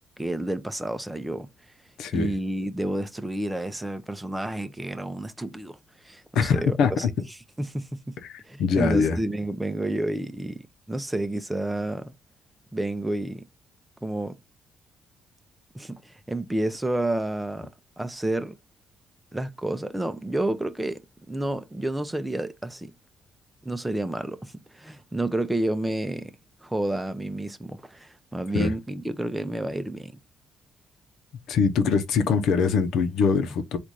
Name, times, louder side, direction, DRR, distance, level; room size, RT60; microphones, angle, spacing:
voice 1, 0.2-1.5 2.1-7.1 7.6-8.2 8.4-10.6 10.9-12.1 12.7-13.5 14.0-14.4 15.7-17.7 18.0-18.6 19.3-21.0 21.3-22.9 23.6-26.3 26.6-30.2, right 1 dB, 10° right, 0.7 m, -30 dB
voice 2, 2.0-2.3 6.3-7.1 8.2-9.2 28.5-28.7 31.5-33.8, left 5 dB, 80° left, 0.8 m, -23 dB
4.1 x 2.5 x 4.7 m
cardioid pair, 90°, 0 cm